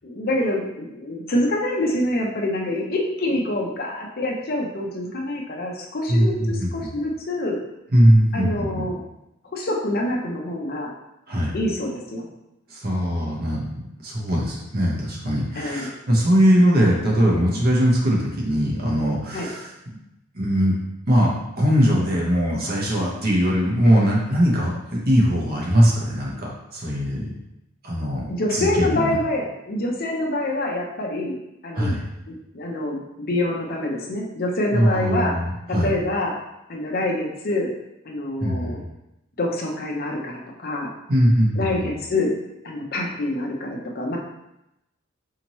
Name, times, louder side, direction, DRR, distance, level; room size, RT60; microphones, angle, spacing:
voice 1, 0.0-7.6 8.3-9.0 9.5-10.9 11.5-12.3 15.6-15.9 19.3-19.5 28.3-31.4 31.6-32.0 32.3-35.4 35.7-36.4 36.7-37.7 38.1-38.8 39.4-40.9 41.6-42.3 42.6-44.2, left 1 dB, 45° left, -1 dB, 0.6 m, -26 dB
voice 2, 6.1-6.9 7.9-8.9 11.3-11.5 12.7-19.7 20.3-20.8 21.1-27.3 27.8-28.2 28.5-29.2 31.7-32.0 34.7-35.9 38.4-38.8 41.1-41.9, equal, 45° right, -3 dB, 0.9 m, -20 dB
4.3 x 2.8 x 3.0 m, 0.88 s
head